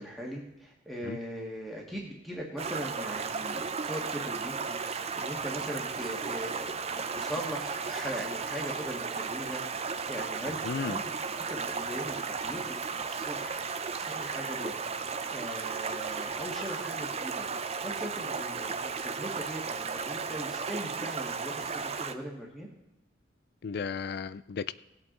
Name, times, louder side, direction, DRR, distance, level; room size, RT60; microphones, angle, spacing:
voice 1, 0.0-17.5 17.8-22.7, equal, ahead, -2 dB, 1.6 m, -40 dB
Stream, 2.6-22.1, right 5 dB, 35° right, 0.6 m, -35 dB
voice 2, 10.6-11.0 23.6-24.7, left 5 dB, 55° left, 16 dB, 0.4 m, -34 dB
18.5 x 8.4 x 3.8 m, 0.90 s
head